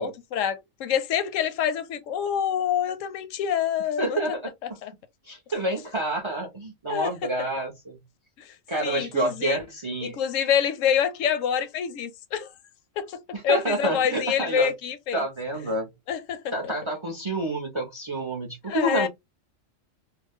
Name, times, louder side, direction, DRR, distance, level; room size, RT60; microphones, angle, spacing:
voice 1, 0.0-4.2 4.8-4.9 6.9-7.1 8.4-8.5 8.8-9.7 10.0-12.5 13.0-15.2 16.1-16.7 18.7-19.1, left 8 dB, 85° left, 1.0 m, -26 dB
voice 2, 4.0-4.5 5.3-8.0 8.7-10.2 13.3-14.7 15.1-15.9 16.5-19.1, right 1 dB, 40° right, 0.4 m, -28 dB
2.5 x 2.0 x 3.4 m
omnidirectional pair, 1.3 m